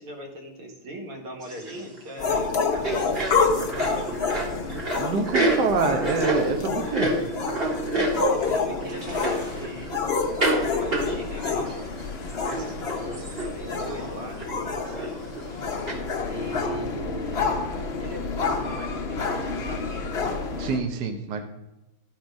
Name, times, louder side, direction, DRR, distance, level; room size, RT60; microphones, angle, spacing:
voice 1, 0.0-3.9 7.9-10.0 10.4-11.9 12.6-15.2 16.3-17.4 18.0-20.1, right 1 dB, 80° right, 0 dB, 2.5 m, -40 dB
sound 1, 1.4-2.0 2.3-2.5 2.7-8.5 8.8-10.0 10.4-10.6 10.9-11.7 12.0-12.1 12.3-13.5 13.8-14.0 14.4-15.5 15.9-16.0, right 1 dB, 30° right, 1.6 m, -28 dB
sound 2, 2.2-20.8, left 4 dB, 75° left, 0.5 m, -28 dB
voice 2, 5.0-7.1 20.6-21.4, right 4 dB, 60° right, 4 dB, 1.3 m, -26 dB
sound 3, 8.7-15.8, left 2 dB, 25° left, 1.9 m, -44 dB
12.5 x 4.4 x 5.1 m, 1.0 s
omnidirectional pair, 2.4 m